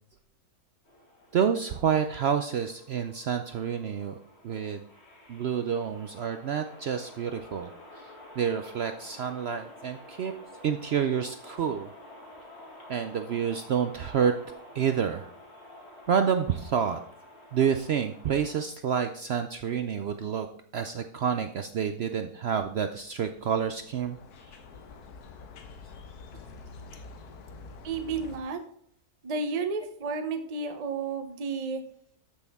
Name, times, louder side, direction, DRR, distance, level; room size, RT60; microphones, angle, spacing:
sound 1, 0.8-18.6, left 1 dB, 45° left, 2.3 m, -50 dB
voice 1, 1.3-4.2 4.4-4.8 5.3-7.7 8.0-10.3 10.6-11.9 12.9-15.3 16.1-17.0 17.5-20.5 20.7-24.2 24.5-24.6, right 7 dB, 70° right, 7 dB, 0.6 m, -28 dB
sound 2, 22.9-28.4, left 4 dB, 80° left, 1.5 m, -47 dB
voice 2, 27.8-28.6 29.2-31.8, right 4 dB, 35° right, 7 dB, 0.7 m, -32 dB
13.0 x 6.3 x 3.5 m, 0.65 s
omnidirectional pair, 1.6 m